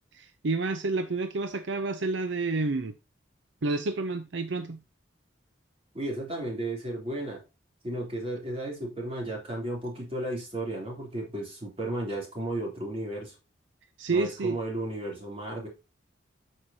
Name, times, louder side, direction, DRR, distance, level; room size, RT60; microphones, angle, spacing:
voice 1, 0.1-2.9 3.6-4.8 14.0-14.6, right 3 dB, 70° right, 0.6 m, -29 dB
voice 2, 5.9-7.4 7.8-13.3 14.1-15.7, right 1 dB, 30° right, 3.1 m, -34 dB
8.7 x 6.5 x 2.8 m
head